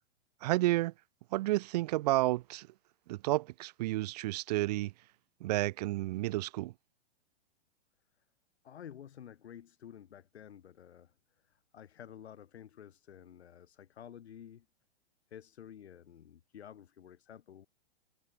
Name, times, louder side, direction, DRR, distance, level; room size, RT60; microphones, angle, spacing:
voice 1, 0.4-0.9 1.3-2.7 3.1-4.9 5.4-6.7, right 18 dB, 40° right, 1.1 m, -31 dB
voice 2, 8.6-11.1 11.5-14.7 15.3-17.7, left 9 dB, 80° left, 5.8 m, -51 dB
hypercardioid pair, 160°, 32 cm